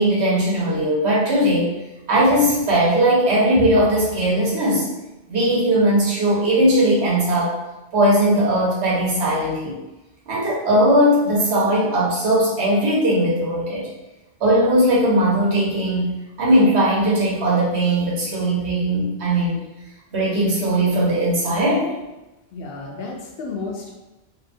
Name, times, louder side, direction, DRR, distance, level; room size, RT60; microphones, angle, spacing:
voice 1, 0.0-1.7 2.1-4.8 5.3-7.6 7.9-9.8 10.3-13.9 14.4-19.6 20.1-21.9, right 1 dB, 75° right, -6 dB, 1.1 m, -19 dB
voice 2, 22.5-23.9, left 3 dB, 65° left, -1 dB, 0.7 m, -32 dB
2.7 x 2.1 x 2.6 m, 1.0 s
omnidirectional pair, 1.1 m